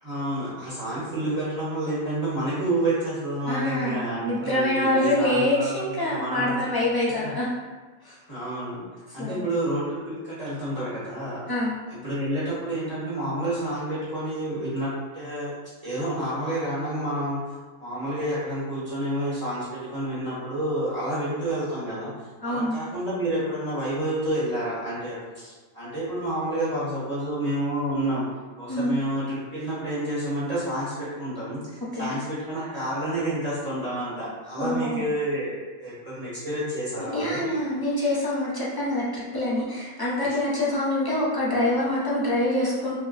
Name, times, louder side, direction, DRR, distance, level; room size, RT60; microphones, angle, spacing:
voice 1, 0.0-6.5 7.2-7.3 8.3-8.8 9.1-11.4 11.9-15.5 15.8-17.4 17.8-22.1 22.4-28.2 28.6-35.5 35.8-37.4, right 1 dB, 30° right, -12 dB, 1.2 m, -29 dB
voice 2, 3.5-7.5 8.0-8.2 9.2-9.5 11.5-11.7 22.4-22.8 28.7-28.9 31.9-32.1 34.6-35.1 37.1-43.0, left 1 dB, 25° left, -8 dB, 0.5 m, -25 dB
2.9 x 2.1 x 3.9 m, 1.4 s
omnidirectional pair, 1.3 m